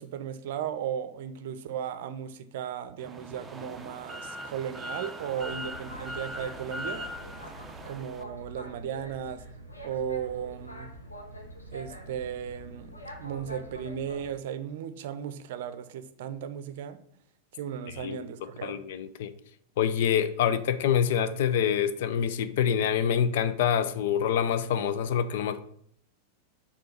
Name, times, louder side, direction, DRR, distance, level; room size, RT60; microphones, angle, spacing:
voice 1, 0.0-7.0 7.8-9.4 9.8-10.9 11.7-12.9 13.2-17.0 17.5-18.8, right 9 dB, 55° right, 0.6 m, -36 dB
sound 1, 3.0-8.2, equal, 10° right, 0.6 m, -40 dB
Boat Water vehicle, 5.3-14.3, equal, 80° left, 1.0 m, -45 dB
voice 2, 18.0-19.3 19.8-25.6, left 8 dB, 55° left, 0.5 m, -26 dB
6.8 x 3.8 x 6.0 m
figure-of-eight pair, 90°, 0 cm